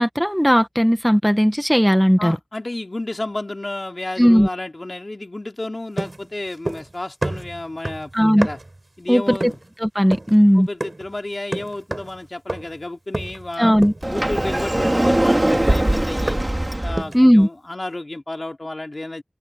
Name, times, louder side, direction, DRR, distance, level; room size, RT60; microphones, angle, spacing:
voice 1, 0.0-2.4 4.2-4.5 8.1-8.5 9.1-9.5 9.8-10.7 13.6-13.9 17.1-17.5, equal, ahead, 1.2 m, -16 dB
voice 2, 2.2-8.6 9.0-9.6 10.5-13.7 14.0-16.4 16.8-19.2, left 2 dB, 45° left, 3.6 m, -31 dB
sound 1, 6.0-6.9 7.2-8.8 9.4-9.7 10.1-10.4 10.8-11.1 11.5-12.2 12.5-12.8 13.1-13.5 13.8-14.1 14.4-16.6 17.0-17.3, right 2 dB, 45° right, 3.8 m, -30 dB
Sliding door, 14.0-17.0, right 1 dB, 25° right, 3.3 m, -20 dB
wide cardioid pair, 50°, 0 cm